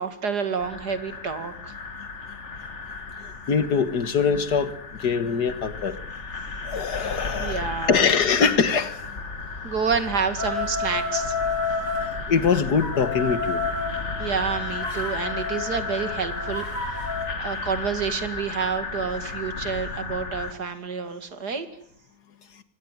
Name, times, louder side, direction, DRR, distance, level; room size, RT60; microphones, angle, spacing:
voice 1, 0.0-1.7 7.4-8.0 9.6-11.4 14.2-21.7, right 6 dB, 70° right, 10 dB, 2.9 m, -29 dB
sound 1, 0.6-20.5, left 3 dB, 40° left, 2.2 m, -34 dB
voice 2, 3.5-6.0 6.6-8.9 12.3-13.6, left 5 dB, 70° left, 13 dB, 2.1 m, -23 dB
sound 2, 10.4-12.1 12.8-17.3, left 4 dB, 85° right, 5.3 m, -30 dB
24.5 x 18.5 x 9.3 m, 0.66 s
omnidirectional pair, 1.8 m